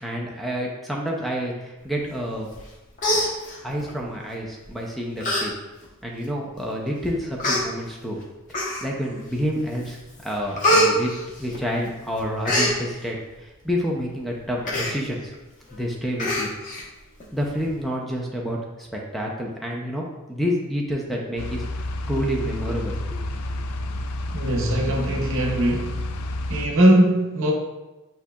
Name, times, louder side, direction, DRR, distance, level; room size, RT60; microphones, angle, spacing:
voice 1, 0.0-2.5 3.6-5.5 6.0-8.2 8.8-10.0 10.2-11.1 11.4-15.3 15.7-16.5 17.3-23.2, equal, ahead, -2 dB, 0.5 m, -28 dB
Human voice, 2.5-2.7 3.0-3.9 4.6-4.8 5.2-5.4 5.8-5.9 6.7-6.8 7.4-7.6 8.5-9.1 9.5-9.9 10.2-11.9 12.2-12.7 14.6-14.9 15.3-15.4 15.7-15.8 16.2-16.8 17.2-17.3, equal, 40° left, 0.9 m, -23 dB
sound 1, 21.4-26.7, left 1 dB, 85° left, 0.4 m, -30 dB
voice 2, 24.3-26.0 26.5-27.5, right 1 dB, 65° right, 1 dB, 0.8 m, -20 dB
8.3 x 2.8 x 2.3 m, 1.1 s
head